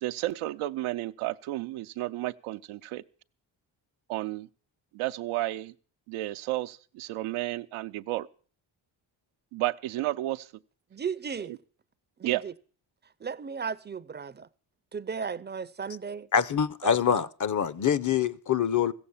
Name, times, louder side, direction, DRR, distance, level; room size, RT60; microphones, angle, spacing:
voice 1, 0.0-3.0 4.1-4.5 4.9-5.7 6.1-8.3 9.5-10.5 11.4-11.6 12.2-12.4, right 16 dB, 85° right, 0.6 m, -32 dB
voice 2, 10.9-11.5 12.2-12.5 13.2-14.5 14.9-16.3 16.8-16.9, right 6 dB, 20° right, 0.5 m, -35 dB
voice 3, 16.3-18.9, left 8 dB, 40° left, 0.7 m, -25 dB
15.0 x 7.9 x 7.1 m
cardioid pair, 70°, 48 cm